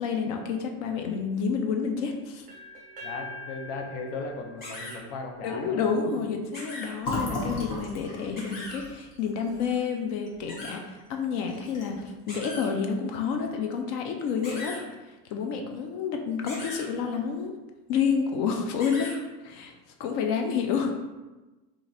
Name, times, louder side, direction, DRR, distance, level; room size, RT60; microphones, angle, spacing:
voice 1, 0.0-2.5 5.4-14.8 15.3-17.5 17.9-19.2 19.4-19.7 20.0-20.9, left 6 dB, 55° left, 3 dB, 0.5 m, -29 dB
sound 1, 2.5-6.4, left 2 dB, 20° right, 0.4 m, -45 dB
voice 2, 3.0-6.2, left 3 dB, 75° left, 2 dB, 0.8 m, -37 dB
sound 2, 4.6-5.0 6.5-6.9 8.4-8.8 10.5-10.7 12.3-12.7 14.4-14.8 16.5-16.8 18.8-19.2, left 2 dB, 20° left, 1.1 m, -39 dB
Fill (with liquid), 7.0-10.7 11.0-11.2 11.5-12.1, left 2 dB, 40° left, 1.0 m, -35 dB
2.9 x 2.5 x 3.9 m, 1.1 s
cardioid pair, 150°, 48 cm